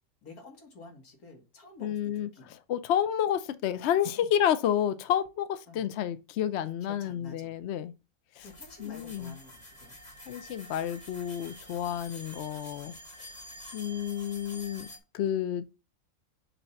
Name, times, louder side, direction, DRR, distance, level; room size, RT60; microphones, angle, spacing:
voice 1, 0.2-2.5 4.2-4.3 5.7-5.9 6.8-7.5 8.4-10.0, left 3 dB, 80° left, 2.2 m, -50 dB
voice 2, 1.8-2.3 2.7-7.9 8.4-8.5 8.8-9.3 10.3-12.9 13.7-14.9 15.1-15.6, left 10 dB, 65° left, 0.7 m, -30 dB
sound 1, 8.4-15.0, left 1 dB, 30° left, 1.6 m, -48 dB
7.0 x 2.8 x 5.6 m
omnidirectional pair, 1.5 m